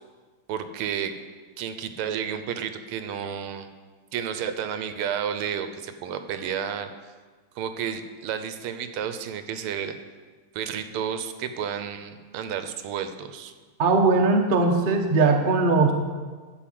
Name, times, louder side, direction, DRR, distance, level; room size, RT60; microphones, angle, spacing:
voice 1, 0.5-1.1 1.6-3.7 4.1-6.9 7.6-10.0 10.5-13.5, right 8 dB, 85° right, 9 dB, 1.6 m, -31 dB
voice 2, 13.8-15.9, right 3 dB, 45° right, 3 dB, 0.7 m, -20 dB
11.5 x 4.8 x 7.6 m, 1.4 s
omnidirectional pair, 2.4 m